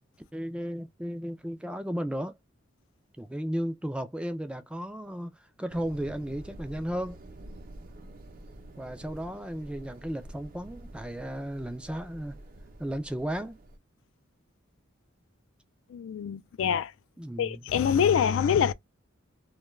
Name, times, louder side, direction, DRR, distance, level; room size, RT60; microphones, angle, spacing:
voice 1, 0.3-2.4 3.2-5.3 5.6-7.2 8.8-12.4 12.8-13.6 17.2-17.6, equal, 5° right, 0.3 m, -34 dB
sound 1, 5.7-13.8, right 1 dB, 45° right, 0.6 m, -47 dB
voice 2, 15.9-16.9 17.4-18.7, left 8 dB, 75° left, 0.3 m, -25 dB
2.2 x 2.2 x 3.1 m
head